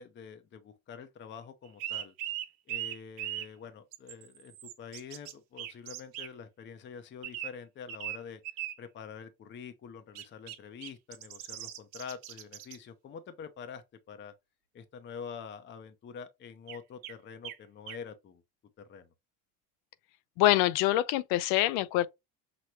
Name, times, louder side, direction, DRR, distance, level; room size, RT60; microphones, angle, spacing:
voice 1, 0.0-2.1 2.7-8.4 8.8-14.3 14.7-18.4 18.9-19.1, left 6 dB, 30° left, 0.6 m, -46 dB
sound 1, 1.7-3.5 3.9-5.3 5.6-6.3 7.2-7.5 7.9-8.2 8.4-8.7 10.2-10.6 10.8-12.8 16.7-16.8 17.0-17.1 17.4-17.6 17.9-18.0, right 12 dB, 90° right, 0.9 m, -39 dB
voice 2, 20.4-22.1, left 15 dB, 75° left, 0.6 m, -25 dB
6.0 x 2.2 x 3.0 m
supercardioid pair, 110°, 39 cm